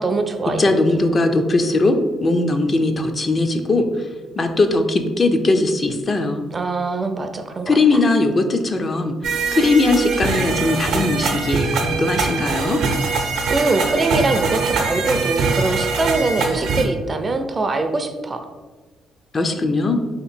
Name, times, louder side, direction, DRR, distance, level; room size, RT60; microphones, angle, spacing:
voice 1, 0.0-0.8 6.5-8.0 13.5-18.5, right 3 dB, 30° right, 7 dB, 0.4 m, -23 dB
voice 2, 0.6-4.1 4.4-6.5 7.7-12.8 19.3-20.0, left 2 dB, 35° left, 6 dB, 0.4 m, -19 dB
sound 1, 9.2-16.8, right 4 dB, 80° right, 0.6 m, -22 dB
3.2 x 2.9 x 4.3 m, 1.3 s
cardioid pair, 90°, 0 cm